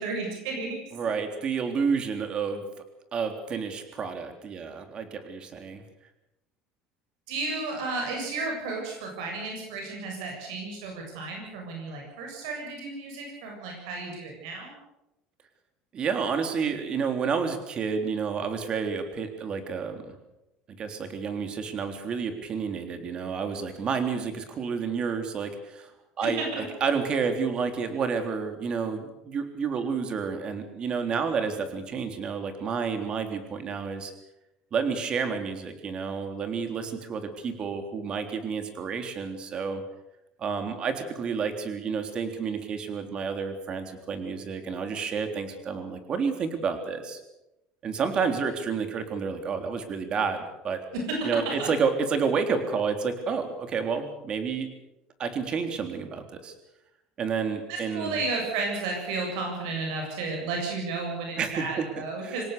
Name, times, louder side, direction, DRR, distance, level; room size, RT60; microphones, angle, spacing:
voice 1, 0.0-0.8 7.3-14.8 26.2-26.6 50.9-51.2 51.6-51.7 57.7-62.4, right 3 dB, 85° right, 1 dB, 7.7 m, -33 dB
voice 2, 0.9-2.6 3.1-5.8 15.9-20.2 20.7-25.9 26.2-34.1 34.7-39.8 40.4-47.2 47.8-50.8 51.2-54.7 55.2-56.5 57.2-58.2 61.4-62.4, right 5 dB, 35° right, 7 dB, 3.6 m, -30 dB
26.5 x 17.5 x 7.0 m, 0.92 s
cardioid pair, 135°, 3 cm